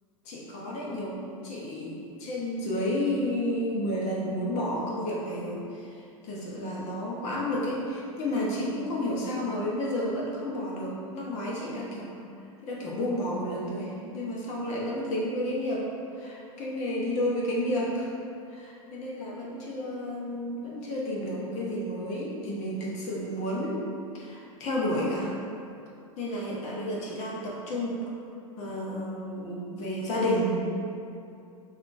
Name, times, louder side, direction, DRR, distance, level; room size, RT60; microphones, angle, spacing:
voice 1, 0.2-12.1 12.6-15.8 16.2-18.1 18.5-23.8 24.1-25.3 26.2-28.1 28.6-30.5, left 1 dB, 40° left, -4 dB, 0.8 m, -31 dB
5.4 x 2.4 x 2.5 m, 2.5 s
hypercardioid pair, 90°, 17 cm